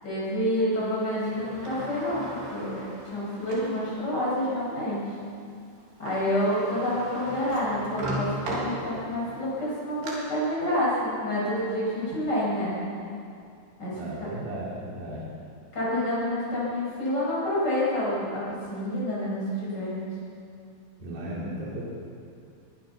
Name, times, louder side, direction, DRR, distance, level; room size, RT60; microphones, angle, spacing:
voice 1, 0.0-5.0 6.0-12.7 13.8-14.3 15.7-20.0, left 1 dB, 25° left, -7 dB, 7.9 m, -28 dB
Sliding door, 1.2-3.8 4.4-4.5 5.8-5.9 6.1-9.2 9.7-10.1, right 1 dB, 75° right, 5.8 m, -37 dB
voice 2, 13.9-15.2 21.0-21.8, right 1 dB, 60° right, -6 dB, 5.4 m, -35 dB
23.0 x 22.0 x 6.1 m, 2.4 s
omnidirectional pair, 4.7 m